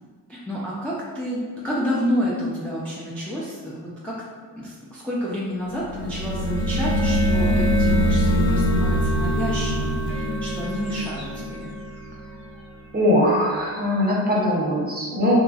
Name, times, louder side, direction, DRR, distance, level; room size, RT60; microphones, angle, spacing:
voice 1, 0.3-4.1 4.5-11.6, equal, 5° left, -7 dB, 0.5 m, -29 dB
sound 1, 5.8-12.5, equal, 60° left, 0.6 m, -23 dB
voice 2, 12.9-15.4, left 1 dB, 20° right, -4 dB, 0.9 m, -20 dB
3.0 x 2.5 x 2.4 m, 1.5 s
cardioid pair, 50°, 42 cm